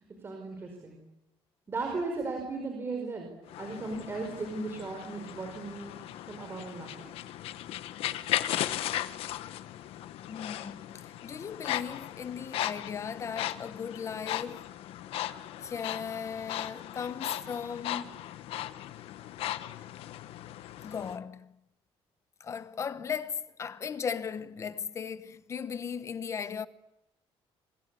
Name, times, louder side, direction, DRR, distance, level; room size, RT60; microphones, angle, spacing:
voice 1, 0.2-1.0 1.7-3.3 3.6-7.1, right 3 dB, 25° right, 5.0 m, -36 dB
sound 1, 3.5-21.2, left 13 dB, 70° left, 1.2 m, -37 dB
voice 2, 10.3-14.7 15.6-18.1 20.8-21.5 22.4-26.7, left 7 dB, 30° left, 1.0 m, -37 dB
27.0 x 25.5 x 8.4 m
cardioid pair, 175°, 10 cm